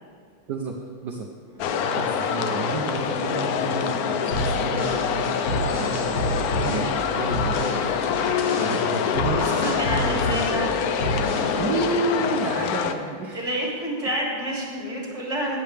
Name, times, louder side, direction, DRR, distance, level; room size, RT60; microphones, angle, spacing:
voice 1, 0.5-1.3 1.9-9.7 10.1-10.3 11.6-13.4, right 3 dB, 60° right, 1 dB, 1.3 m, -31 dB
sound 1, 1.6-12.9, left 7 dB, 80° left, 0.8 m, -25 dB
sound 2, 4.3-6.9 7.3-7.8 8.1-10.6 11.0-11.5, right 1 dB, 35° left, 3.3 m, -29 dB
voice 2, 9.3-11.8 13.3-15.6, right 1 dB, 15° right, -4 dB, 2.8 m, -30 dB
17.5 x 8.0 x 3.4 m, 2.2 s
omnidirectional pair, 2.2 m